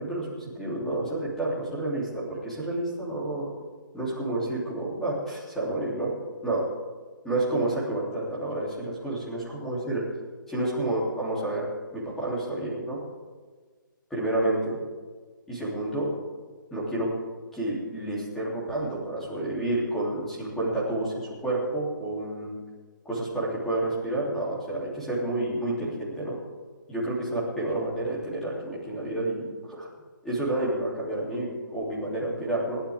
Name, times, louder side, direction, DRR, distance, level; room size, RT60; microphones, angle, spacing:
voice 1, 0.0-3.5 3.9-6.1 6.4-6.6 7.2-10.0 10.5-13.0 14.1-14.8 15.5-16.1 16.7-17.1 17.5-22.6 23.0-26.4 26.9-29.9 30.2-32.8, right 1 dB, 5° left, -8 dB, 3.1 m, -29 dB
28.5 x 11.5 x 3.6 m, 1.5 s
hypercardioid pair, 175°, 11 cm